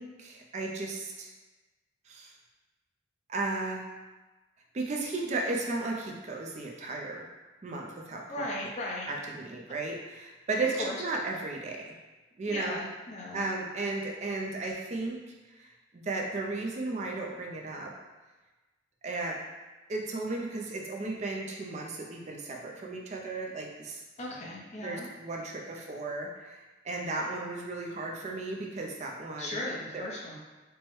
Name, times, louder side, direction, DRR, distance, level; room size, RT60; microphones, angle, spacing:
voice 1, 0.0-1.3 2.1-2.3 3.3-3.9 4.7-7.3 7.6-8.2 9.0-10.7 11.0-11.9 12.4-12.8 13.3-15.2 15.5-15.7 15.9-17.9 19.0-19.4 19.9-24.0 24.8-29.6 29.9-30.0, right 2 dB, 40° right, 0 dB, 0.4 m, -35 dB
voice 2, 8.3-9.1 10.8-11.0 12.5-13.5 24.2-25.1 29.4-30.4, left 1 dB, 40° left, -3 dB, 0.6 m, -37 dB
4.5 x 2.1 x 3.1 m, 1.2 s
head